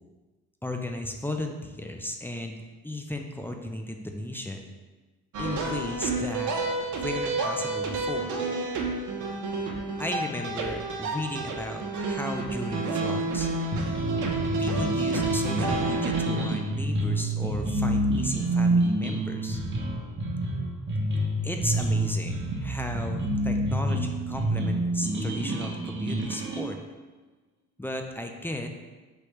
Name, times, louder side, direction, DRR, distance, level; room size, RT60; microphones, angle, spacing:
voice 1, 0.6-2.6 2.8-4.7 5.4-6.5 6.9-8.4 10.0-13.5 14.6-19.6 21.4-26.8 27.8-28.7, left 1 dB, 5° left, 3 dB, 0.4 m, -35 dB
sound 1, 5.3-16.5, right 3 dB, 75° right, 0.7 m, -30 dB
sound 2, 13.7-26.7, right 1 dB, 40° right, 0.9 m, -28 dB
4.8 x 3.1 x 3.0 m, 1.3 s
cardioid pair, 90°, 30 cm